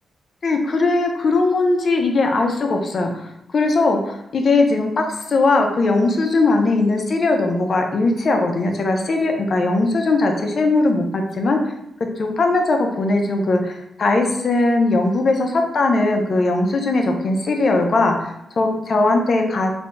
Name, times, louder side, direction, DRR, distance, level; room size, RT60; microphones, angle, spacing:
voice 1, 0.4-11.7 12.2-19.9, left 2 dB, 50° left, 3 dB, 0.5 m, -19 dB
3.4 x 2.2 x 3.9 m, 0.81 s
wide cardioid pair, 130°, 0 cm